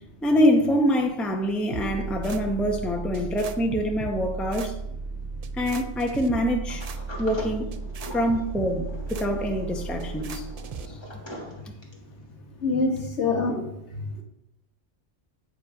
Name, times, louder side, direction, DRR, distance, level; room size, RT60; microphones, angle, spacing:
voice 1, 0.2-4.7 5.5-6.9 7.2-7.7 8.1-10.5 10.9-11.0 11.7-11.8, equal, ahead, 0.7 m, -25 dB
sound 1, 1.7-10.9, right 4 dB, 50° right, 0.5 m, -35 dB
Sliding door, 6.7-12.1, equal, 20° left, 1.7 m, -42 dB
voice 2, 12.6-13.7 13.9-14.2, left 3 dB, 70° left, 1.7 m, -26 dB
8.8 x 5.3 x 4.9 m
omnidirectional pair, 1.2 m